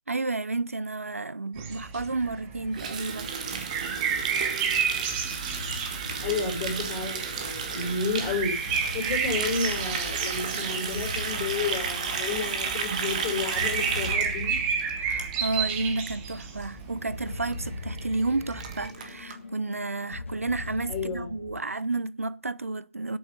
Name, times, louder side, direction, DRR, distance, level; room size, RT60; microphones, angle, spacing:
voice 1, 0.1-3.8 15.1-23.2, right 3 dB, 75° right, 0.9 m, -31 dB
sound 1, 1.6-18.9, right 6 dB, 15° right, 1.9 m, -32 dB
Water tap faucet, 2.7-15.7 16.0-16.3 16.6-16.9 17.2-17.3 17.5-17.6 18.0-18.1 18.3-19.3, right 6 dB, 30° right, 2.4 m, -33 dB
sound 2, 4.6-21.6, left 3 dB, 60° left, 1.5 m, -42 dB
voice 2, 6.2-8.6 8.9-14.6 20.9-21.3, left 4 dB, 15° left, 4.4 m, -31 dB
10.5 x 8.8 x 7.1 m
figure-of-eight pair, 150°, 8 cm